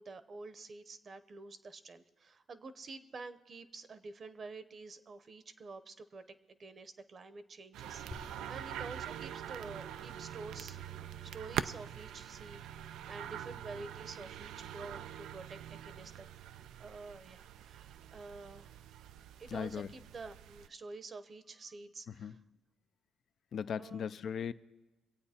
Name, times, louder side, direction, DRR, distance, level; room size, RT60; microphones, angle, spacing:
voice 1, 0.0-10.8 11.2-16.3 16.8-18.8 19.4-22.4 23.8-24.1, right 3 dB, 45° right, 0.9 m, -49 dB
sound 1, 7.7-20.7, right 10 dB, 85° right, 0.4 m, -44 dB
sound 2, 8.1-17.5, left 3 dB, 30° left, 0.8 m, -59 dB
voice 2, 19.5-19.9 22.1-22.4 23.5-24.5, left 7 dB, 60° left, 0.4 m, -38 dB
24.0 x 8.5 x 4.3 m
cardioid pair, 90°, 0 cm